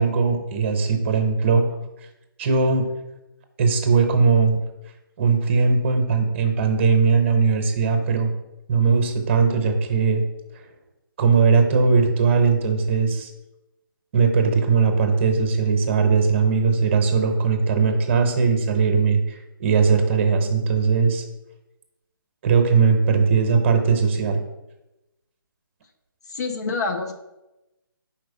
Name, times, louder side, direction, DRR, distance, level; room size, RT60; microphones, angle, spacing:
voice 1, 0.0-1.7 2.4-2.9 3.6-4.6 5.2-8.3 8.7-10.2 11.2-13.3 14.1-21.2 22.4-24.4, right 5 dB, 30° right, 5 dB, 0.9 m, -19 dB
voice 2, 26.3-27.1, left 3 dB, 45° left, 3 dB, 0.9 m, -26 dB
4.7 x 4.5 x 4.9 m, 0.98 s
figure-of-eight pair, 140°, 12 cm